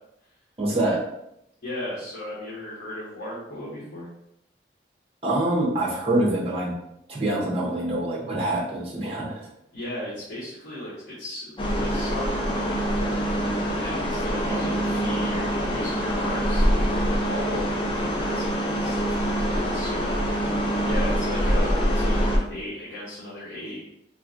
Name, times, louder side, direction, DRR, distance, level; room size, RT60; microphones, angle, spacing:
voice 1, 0.6-1.0 5.2-6.7 7.1-9.5 14.5-14.8, right 1 dB, 35° right, -4 dB, 0.6 m, -25 dB
voice 2, 1.6-4.1 9.7-13.3 13.8-23.8, left 1 dB, 80° left, -7 dB, 0.8 m, -36 dB
sound 1, 11.6-22.4, equal, 30° left, 0.4 m, -25 dB
3.0 x 2.4 x 2.5 m, 0.80 s
head